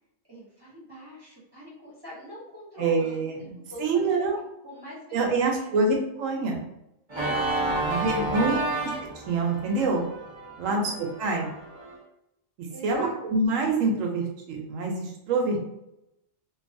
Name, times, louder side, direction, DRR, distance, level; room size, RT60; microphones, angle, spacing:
voice 1, 0.3-4.3 4.6-5.7 7.1-8.7 10.6-11.1 12.7-13.1, equal, 20° right, -8 dB, 1.0 m, -44 dB
voice 2, 2.8-4.4 5.1-6.6 7.8-8.6 9.0-10.0 10.6-11.5 12.6-15.6, right 3 dB, 90° right, 1 dB, 1.0 m, -26 dB
Organ, 7.1-11.9, right 2 dB, 50° right, 0.3 m, -31 dB
2.8 x 2.3 x 2.5 m, 0.86 s
omnidirectional pair, 1.3 m